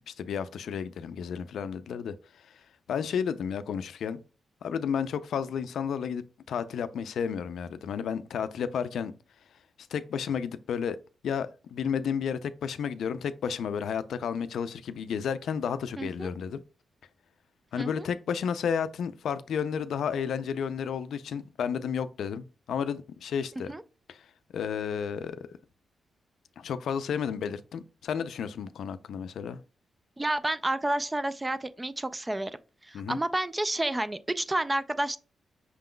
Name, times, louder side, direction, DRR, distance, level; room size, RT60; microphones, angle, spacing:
voice 1, 0.1-2.1 2.9-4.2 4.6-9.1 9.9-11.0 11.2-16.6 17.7-23.7 24.1-24.2 24.5-25.4 26.6-29.6 32.9-33.2, left 7 dB, 80° left, 0.4 m, -32 dB
voice 2, 16.0-16.3 17.8-18.1 23.7-23.8 30.2-32.5 32.8-35.2, right 1 dB, 15° right, 0.3 m, -30 dB
5.9 x 3.7 x 2.2 m
wide cardioid pair, 150°, 0 cm